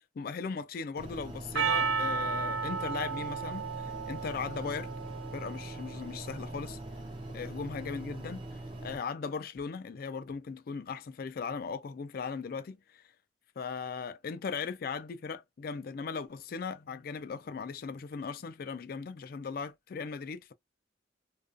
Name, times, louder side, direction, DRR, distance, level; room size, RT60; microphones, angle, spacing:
voice 1, 0.2-4.9 5.3-6.8 7.3-8.4 8.8-13.0 13.6-20.5, left 5 dB, 50° left, 0.3 m, -38 dB
sound 1, 1.0-9.0, right 1 dB, 30° right, 0.6 m, -42 dB
Percussion, 1.6-6.0, right 5 dB, 85° right, 0.4 m, -33 dB
2.3 x 2.3 x 2.5 m
head